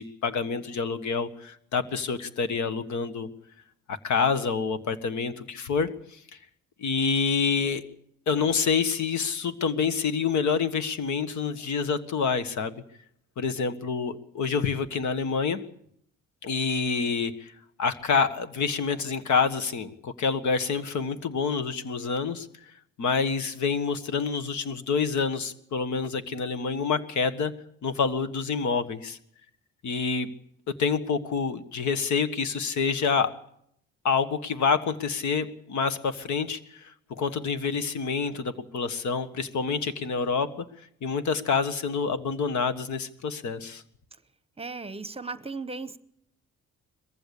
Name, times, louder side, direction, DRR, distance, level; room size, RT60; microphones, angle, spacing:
voice 1, 0.0-3.3 3.9-6.2 6.8-7.8 8.3-12.8 13.4-15.6 16.4-17.5 17.8-22.5 23.0-27.5 27.8-29.2 29.8-30.3 30.8-33.3 34.0-40.7 41.0-43.8, left 5 dB, 70° left, 11 dB, 1.6 m, -27 dB
voice 2, 44.6-46.0, right 3 dB, 20° right, 14 dB, 1.0 m, -36 dB
21.5 x 15.0 x 8.6 m, 0.71 s
cardioid pair, 90°, 30 cm